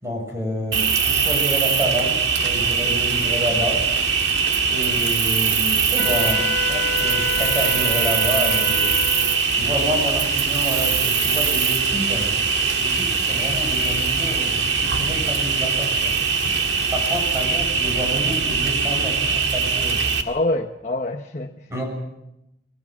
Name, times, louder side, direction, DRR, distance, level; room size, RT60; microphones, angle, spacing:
voice 1, 0.0-3.9 4.7-9.0 9.5-12.4 12.8-16.2 16.9-20.0 21.7-21.8, equal, 15° right, 1 dB, 6.7 m, -28 dB
Cricket, 0.7-20.2, right 5 dB, 80° right, 2.1 m, -21 dB
Wind instrument woodwind instrument, 6.0-9.4, left 5 dB, 85° left, 1.0 m, -29 dB
voice 2, 20.3-21.8, left 2 dB, 40° left, 4 dB, 1.0 m, -26 dB
27.5 x 20.0 x 6.1 m, 0.85 s
head